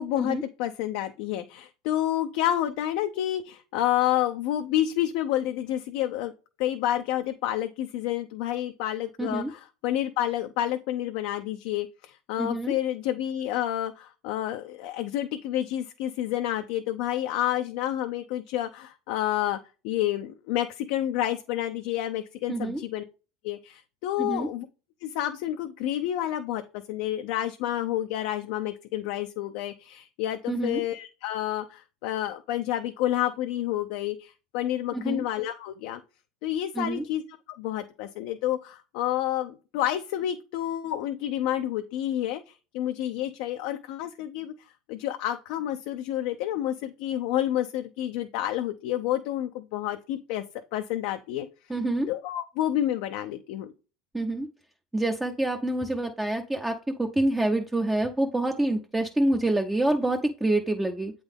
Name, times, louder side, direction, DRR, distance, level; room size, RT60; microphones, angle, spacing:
voice 1, 0.0-6.3 6.6-19.6 19.8-23.0 23.4-24.7 25.0-36.0 36.4-37.2 37.6-44.5 44.9-50.4 50.7-51.5 52.1-53.7, left 12 dB, 70° left, 7 dB, 0.5 m, -29 dB
voice 2, 9.2-9.5 12.4-12.7 22.5-22.8 24.2-24.5 30.5-30.8 34.9-35.2 36.8-37.0 51.7-52.1 54.1-54.5 54.9-61.1, right 1 dB, 10° right, 3 dB, 0.6 m, -27 dB
7.9 x 3.8 x 3.6 m, 0.33 s
supercardioid pair, 125°, 2 cm